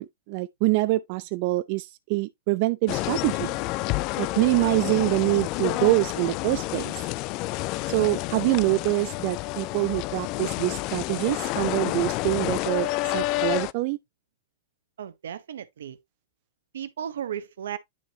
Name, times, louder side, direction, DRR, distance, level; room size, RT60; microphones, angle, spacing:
voice 1, 0.0-3.5 4.2-7.1 7.9-14.0, right 21 dB, 50° right, 0.4 m, -25 dB
sound 1, 2.9-13.7, left 19 dB, 45° left, 0.3 m, -29 dB
voice 2, 15.0-16.0 16.7-17.8, right 9 dB, 85° right, 0.8 m, -35 dB
9.9 x 4.2 x 2.8 m
hypercardioid pair, 125°, 0 cm